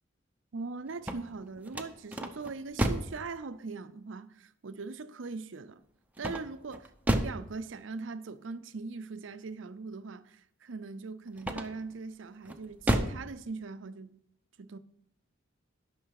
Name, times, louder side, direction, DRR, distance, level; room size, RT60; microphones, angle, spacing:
voice 1, 0.5-5.8 6.2-14.2 14.6-14.8, right 4 dB, 70° right, 0.6 m, -41 dB
sound 1, 0.9-3.2 6.2-7.5 11.4-11.9 12.4-13.2, right 1 dB, 10° right, 0.7 m, -31 dB
11.5 x 6.0 x 4.8 m
head